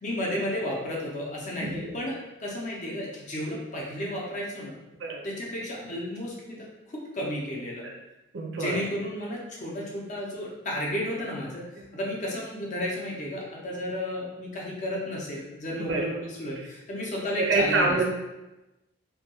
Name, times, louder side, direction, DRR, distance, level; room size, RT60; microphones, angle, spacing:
voice 1, 0.0-4.7 5.2-7.8 8.5-11.6 11.9-18.0, left 1 dB, 35° left, -3 dB, 0.5 m, -33 dB
voice 2, 1.6-2.0 5.0-5.2 7.8-7.9 8.3-8.8 11.8-11.9 15.8-16.0 16.6-16.7 17.4-18.0, right 3 dB, 60° right, 0 dB, 0.4 m, -27 dB
2.2 x 2.2 x 2.8 m, 1.0 s
head